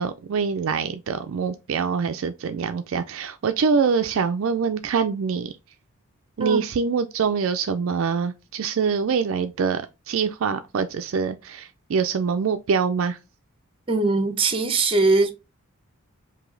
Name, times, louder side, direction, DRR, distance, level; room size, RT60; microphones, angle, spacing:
voice 1, 0.0-5.5 6.4-13.2, right 5 dB, 60° right, 0.4 m, -24 dB
voice 2, 13.9-15.3, right 3 dB, 25° right, 0.8 m, -21 dB
4.8 x 2.7 x 3.8 m
head